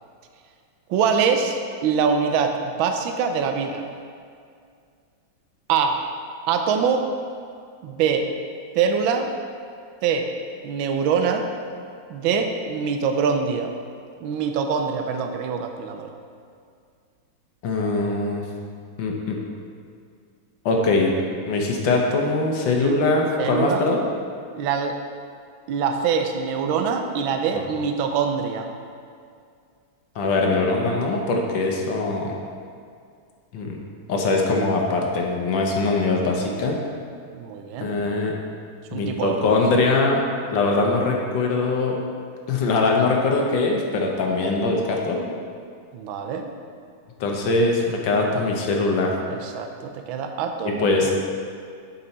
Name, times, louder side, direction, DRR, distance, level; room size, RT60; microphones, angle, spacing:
voice 1, 0.9-3.9 5.7-6.0 6.5-7.1 7.8-8.3 8.7-9.3 10.0-10.3 10.6-11.5 12.1-13.8 14.2-16.1 22.8-23.0 23.4-23.8 24.5-25.0 25.7-28.7 37.3-37.9 38.9-39.4 39.8-39.9 45.9-46.5 49.3-51.1, right 6 dB, 75° right, 5 dB, 1.4 m, -24 dB
voice 2, 17.6-18.4 19.0-19.4 20.6-21.1 21.5-24.0 30.1-32.4 33.5-33.8 34.1-36.8 37.8-38.3 38.9-40.2 40.5-42.0 42.5-45.2 47.2-49.2 50.6-51.1, left 3 dB, 70° left, 0 dB, 1.6 m, -22 dB
8.7 x 5.5 x 4.1 m, 2.3 s
omnidirectional pair, 2.2 m